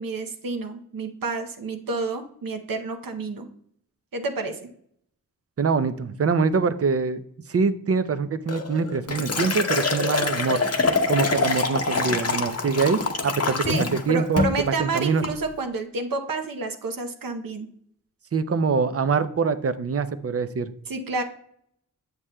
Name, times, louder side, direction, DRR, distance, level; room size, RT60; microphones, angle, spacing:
voice 1, 0.0-3.5 4.1-4.7 13.7-17.7 20.9-21.2, right 3 dB, 75° right, 5 dB, 0.8 m, -29 dB
voice 2, 5.6-7.2 7.5-10.6 11.1-14.5 14.8-15.2 18.3-20.7, right 5 dB, 45° right, 12 dB, 0.5 m, -24 dB
Liquid, 8.5-14.0 14.4-14.6 15.0-15.3, left 4 dB, 45° left, 0.8 m, -25 dB
8.0 x 7.3 x 2.2 m, 0.68 s
wide cardioid pair, 65°, 34 cm